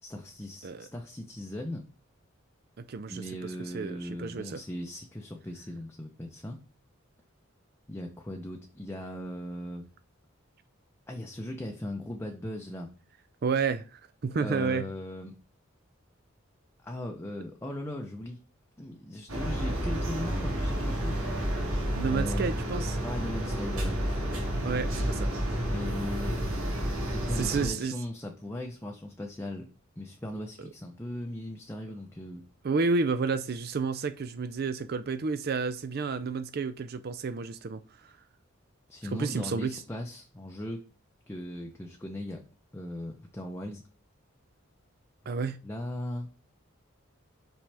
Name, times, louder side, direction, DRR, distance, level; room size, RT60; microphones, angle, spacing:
voice 1, 0.0-1.8 3.1-6.6 7.9-9.9 11.1-12.9 14.4-15.4 16.8-18.4 18.8-21.2 22.1-22.5 23.0-24.0 25.7-26.4 27.0-29.7 30.0-32.4 38.9-40.8 41.3-42.4 42.7-43.8 45.6-46.3, left 1 dB, 10° left, 0.6 m, -38 dB
voice 2, 2.8-4.6 13.4-14.9 22.0-23.0 24.6-25.3 27.4-27.9 32.6-38.1 39.1-39.8 45.3-45.6, right 4 dB, 50° right, 0.4 m, -31 dB
sound 1, 19.3-27.7, equal, 85° right, 2.0 m, -30 dB
5.9 x 5.3 x 3.4 m
head